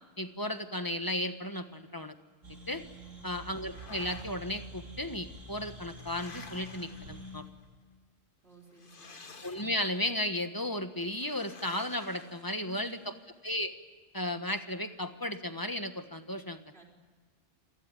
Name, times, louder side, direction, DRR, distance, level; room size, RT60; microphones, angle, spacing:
voice 1, 0.2-2.1 2.7-2.8 3.2-7.4 9.4-13.1 13.4-13.7 14.1-16.6, left 1 dB, 15° left, 8 dB, 1.3 m, -34 dB
sound 1, 2.4-7.4, right 1 dB, 75° right, 3.9 m, -47 dB
voice 2, 3.1-3.6 8.4-9.3 12.6-13.2 16.7-16.9, right 3 dB, 50° right, 0 dB, 4.4 m, -56 dB
sound 2, 3.4-4.7 5.5-7.6 8.7-10.1 11.2-13.1, left 4 dB, 45° left, 1.5 m, -52 dB
27.5 x 18.5 x 9.2 m, 1.4 s
omnidirectional pair, 1.3 m